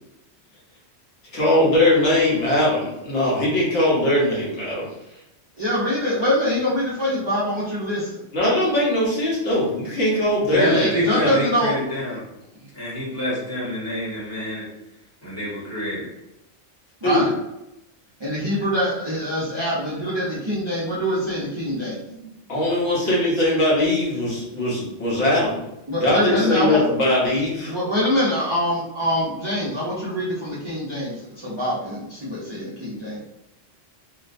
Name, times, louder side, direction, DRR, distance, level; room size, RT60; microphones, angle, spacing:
voice 1, 1.3-4.9 8.3-11.4 17.0-17.3 22.5-25.6 26.0-27.7, left 1 dB, 65° left, -6 dB, 1.2 m, -20 dB
voice 2, 5.6-8.2 10.5-11.7 17.0-17.3 18.2-22.0 25.9-26.8 27.7-33.2, equal, 35° right, -8 dB, 0.4 m, -24 dB
voice 3, 10.5-12.2 12.7-14.7 15.2-16.1, left 1 dB, 15° left, -8 dB, 0.9 m, -26 dB
2.9 x 2.1 x 2.5 m, 0.89 s
omnidirectional pair, 1.3 m